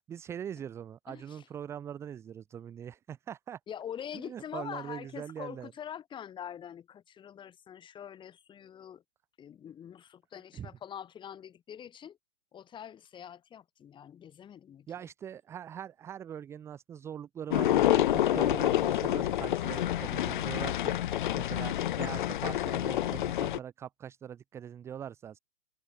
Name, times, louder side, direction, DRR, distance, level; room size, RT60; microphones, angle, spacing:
voice 1, 0.1-3.6 4.1-5.7 10.5-10.7 14.9-21.0 21.3-25.4, right 9 dB, 5° right, 0.7 m, -42 dB
voice 2, 1.1-1.5 3.7-9.0 9.4-12.2 12.5-14.9, left 9 dB, 15° left, 3.2 m, -44 dB
sound 1, 17.5-23.6, left 12 dB, 40° left, 0.7 m, -28 dB
hypercardioid pair, 155°, 38 cm